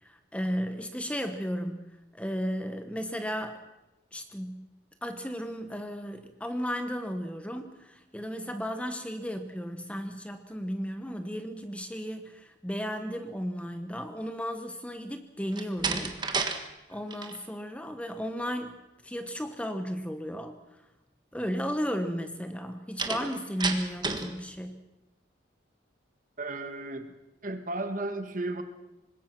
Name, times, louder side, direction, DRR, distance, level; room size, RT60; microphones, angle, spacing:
voice 1, 0.0-1.9 2.1-3.6 4.1-4.7 5.0-18.8 19.0-20.6 21.3-24.7, equal, 5° left, 7 dB, 1.1 m, -34 dB
Slam, 15.5-16.6 16.9-17.4 23.0-24.3, right 4 dB, 20° right, 1.5 m, -31 dB
voice 2, 26.4-27.1 27.4-28.6, right 2 dB, 40° right, 8 dB, 1.7 m, -34 dB
25.5 x 20.5 x 6.1 m, 0.99 s
head